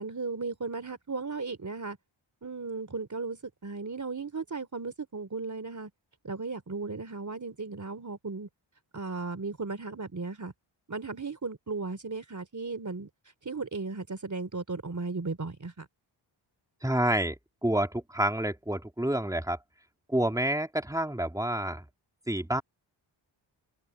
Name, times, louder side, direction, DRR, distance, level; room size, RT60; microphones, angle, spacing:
voice 1, 0.0-2.0 2.4-5.9 6.2-8.5 8.9-10.5 10.9-13.1 13.5-15.9, right 4 dB, 35° right, 3.6 m, -36 dB
voice 2, 16.8-17.4 17.6-19.6 20.1-21.8 22.3-22.6, right 1 dB, 5° right, 2.7 m, -28 dB
cardioid pair, 65°, 48 cm